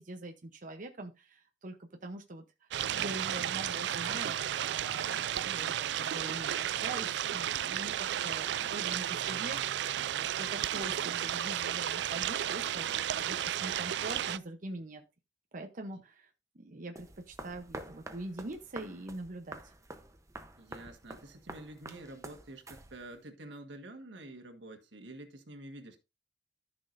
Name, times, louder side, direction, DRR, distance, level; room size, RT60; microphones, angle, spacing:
voice 1, 0.0-1.8 2.0-2.4 3.0-5.7 6.0-9.6 10.2-15.0 15.5-16.3 16.5-19.7, right 2 dB, 50° right, 0.9 m, -43 dB
sound 1, 2.7-14.4, right 10 dB, 70° right, 0.4 m, -33 dB
sound 2, 17.0-23.2, right 2 dB, 20° right, 0.9 m, -48 dB
voice 2, 20.6-26.0, right 1 dB, 85° right, 1.6 m, -48 dB
14.0 x 6.1 x 2.6 m
head